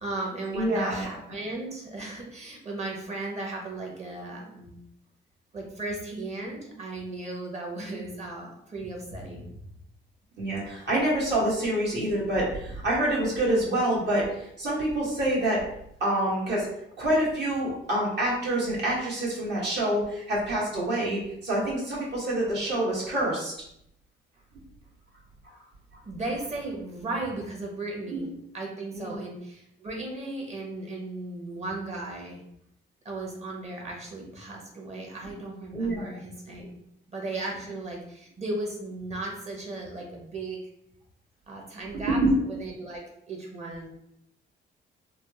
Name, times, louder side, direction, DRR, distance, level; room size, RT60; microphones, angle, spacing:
voice 1, 0.0-4.8 5.5-9.5 26.0-28.3 28.5-32.4 33.0-36.8 37.1-40.6 41.5-42.2 42.5-43.9, right 2 dB, 35° right, -1 dB, 0.9 m, -36 dB
voice 2, 0.5-1.1 10.4-15.6 16.0-16.7 17.0-23.5 28.1-28.3 28.9-29.2 35.7-36.1 41.9-42.3, right 1 dB, 60° right, -5 dB, 1.3 m, -26 dB
3.4 x 2.0 x 2.7 m, 0.75 s
cardioid pair, 90°, 20 cm